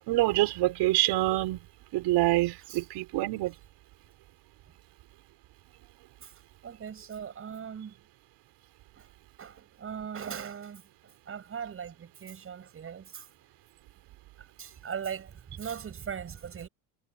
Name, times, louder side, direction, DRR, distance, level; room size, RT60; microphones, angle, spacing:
voice 1, 0.1-1.6 1.9-3.5, right 18 dB, 75° right, 5.5 m, -26 dB
voice 2, 6.2-7.9 8.9-9.1 9.4-13.3 14.4-16.7, right 7 dB, 30° right, 7.5 m, -40 dB
cardioid pair, 150°, 41 cm